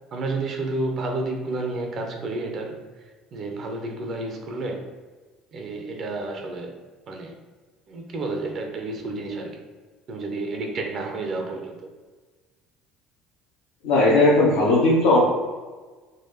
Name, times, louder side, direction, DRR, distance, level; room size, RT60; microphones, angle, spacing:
voice 1, 0.1-2.8 3.3-4.9 5.5-6.8 7.1-7.3 7.9-9.6 10.1-11.9, right 2 dB, 50° right, 3 dB, 0.6 m, -30 dB
voice 2, 13.8-15.2, left 2 dB, 70° left, -6 dB, 0.7 m, -17 dB
3.9 x 2.5 x 2.8 m, 1.4 s
figure-of-eight pair, 60°, 0 cm